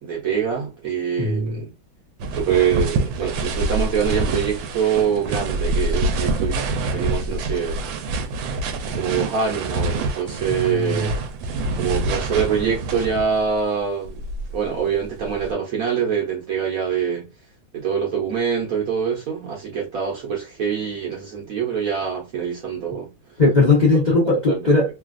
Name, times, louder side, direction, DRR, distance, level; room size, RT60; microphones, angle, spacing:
voice 1, 0.0-1.7 2.3-7.8 8.9-11.1 11.8-14.2 14.5-17.3 17.7-23.1 24.5-24.8, right 7 dB, 60° right, 1.0 m, -24 dB
voice 2, 1.2-1.6 10.5-11.1 23.4-24.8, left 3 dB, 35° left, 0.7 m, -18 dB
sound 1, 2.2-13.5 14.0-15.5, right 2 dB, 75° right, 1.3 m, -26 dB
3.2 x 2.3 x 2.4 m
omnidirectional pair, 2.2 m